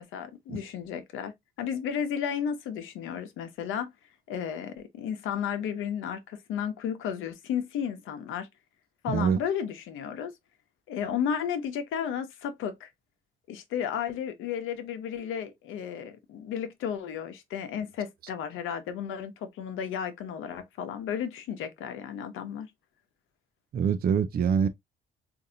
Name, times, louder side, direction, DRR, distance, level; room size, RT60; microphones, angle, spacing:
voice 1, 0.0-1.3 1.6-3.9 4.3-8.5 9.0-10.3 10.9-12.9 13.5-22.7, left 8 dB, 90° left, 0.9 m, -33 dB
voice 2, 9.1-9.4 23.7-24.7, right 7 dB, 50° right, 0.5 m, -25 dB
3.9 x 2.6 x 2.6 m
cardioid pair, 90°, 20 cm